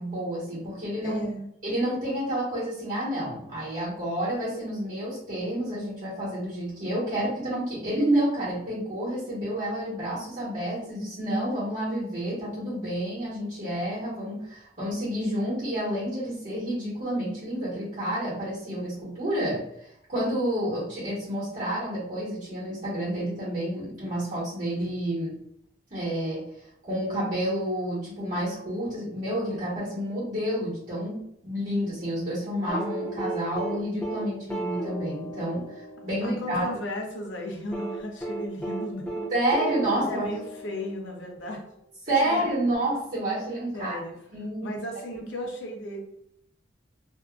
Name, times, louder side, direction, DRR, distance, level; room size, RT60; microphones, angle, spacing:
voice 1, 0.0-1.2 1.6-25.4 25.9-26.4 26.8-36.8 39.3-40.3 42.1-44.0 44.3-44.7 45.1-45.2, right 1 dB, 45° right, -7 dB, 1.2 m, -29 dB
voice 2, 1.0-1.5 36.2-39.3 40.1-41.6 42.2-42.4 43.7-44.1 44.6-46.0, left 1 dB, 80° left, 1 dB, 0.7 m, -35 dB
sound 1, 32.7-36.8 37.7-41.3 42.7-42.8, right 2 dB, 5° left, 0.5 m, -34 dB
2.7 x 2.4 x 2.3 m, 0.74 s
head